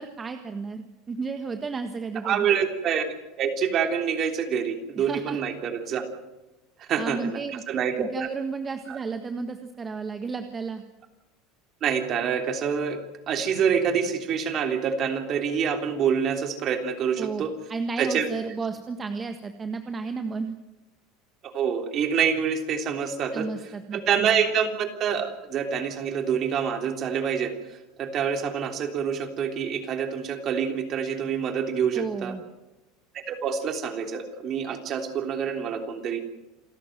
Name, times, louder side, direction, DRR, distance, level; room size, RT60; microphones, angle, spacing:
voice 1, 0.0-2.5 5.0-5.4 7.0-7.6 7.9-10.8 17.2-17.4 17.7-20.6 23.3-24.3 31.9-32.4, right 4 dB, 20° right, 7 dB, 1.5 m, -32 dB
voice 2, 2.2-6.1 6.8-8.3 11.8-13.0 13.3-17.5 18.0-18.3 21.4-23.5 23.9-27.5 28.0-32.4 33.1-36.2, right 7 dB, 40° right, 6 dB, 3.4 m, -26 dB
27.5 x 13.5 x 9.1 m, 1.0 s
supercardioid pair, 135°, 0 cm